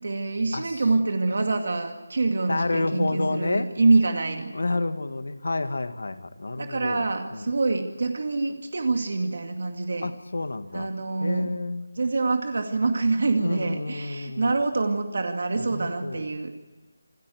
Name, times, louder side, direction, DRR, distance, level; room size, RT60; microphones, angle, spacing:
voice 1, 0.0-4.5 6.6-10.1 10.7-11.5 12.0-16.5, right 3 dB, 55° right, 5 dB, 2.3 m, -25 dB
voice 2, 2.5-3.7 4.5-7.5 10.0-10.9 11.2-11.9 13.4-14.5 15.5-16.2, left 2 dB, 70° left, 10 dB, 1.9 m, -29 dB
27.0 x 14.5 x 9.5 m, 1.2 s
figure-of-eight pair, 175°, 0 cm